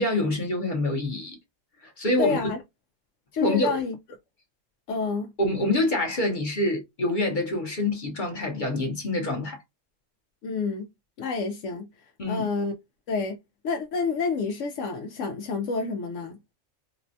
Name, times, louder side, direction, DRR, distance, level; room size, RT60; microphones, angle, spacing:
voice 1, 0.0-1.4 1.8-2.4 3.4-3.8 5.4-9.6 12.2-12.5, left 1 dB, 45° left, 0.9 m, -26 dB
voice 2, 2.2-2.6 3.3-4.0 4.9-5.3 10.4-10.8 11.2-11.9 12.3-12.7 13.1-13.4 13.6-16.4, left 4 dB, 75° left, 0.9 m, -28 dB
4.1 x 2.1 x 2.5 m
omnidirectional pair, 1.3 m